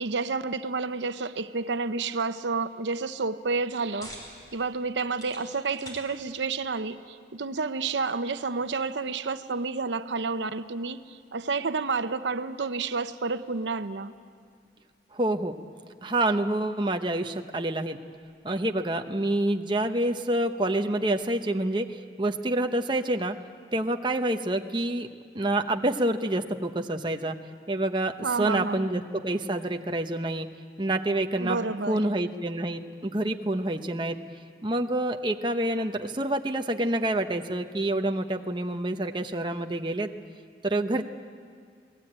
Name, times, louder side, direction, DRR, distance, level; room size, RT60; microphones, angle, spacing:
voice 1, 0.0-4.1 4.5-14.1 28.2-28.9 31.4-32.1, right 4 dB, 90° right, 10 dB, 0.8 m, -30 dB
sound 1, 3.4-18.5, equal, 20° left, 5.5 m, -54 dB
voice 2, 15.1-15.6 16.0-18.0 18.4-23.3 23.7-25.1 25.3-27.4 27.7-30.5 30.8-31.6 31.9-34.2 34.6-40.1 40.6-41.0, right 1 dB, 25° right, 5 dB, 0.9 m, -27 dB
29.0 x 19.5 x 8.8 m, 2.1 s
head